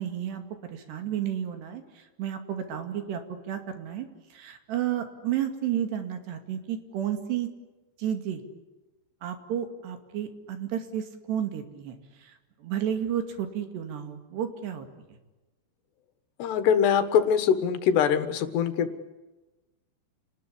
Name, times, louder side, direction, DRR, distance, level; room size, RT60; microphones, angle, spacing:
voice 1, 0.0-7.5 8.0-8.4 9.2-14.9, right 10 dB, 80° right, 6 dB, 4.5 m, -32 dB
voice 2, 16.4-19.1, left 8 dB, 80° left, 10 dB, 3.6 m, -23 dB
29.0 x 19.5 x 10.0 m, 1.1 s
omnidirectional pair, 4.8 m